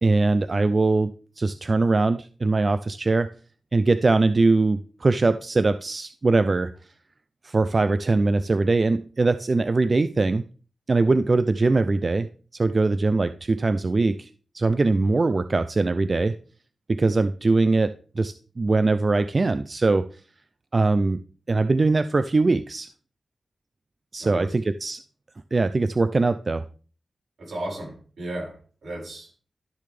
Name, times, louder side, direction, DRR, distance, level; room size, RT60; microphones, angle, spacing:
voice 1, 0.0-3.3 3.7-6.7 7.4-10.4 10.9-14.3 14.5-16.4 16.9-20.1 20.7-21.2 21.5-22.9 24.1-25.0 25.5-26.6, right 3 dB, 40° right, 12 dB, 0.4 m, -22 dB
voice 2, 24.2-24.5 27.4-28.6 28.8-29.3, right 1 dB, 75° right, -2 dB, 5.6 m, -34 dB
12.0 x 6.6 x 3.4 m, 0.39 s
wide cardioid pair, 90°, 0 cm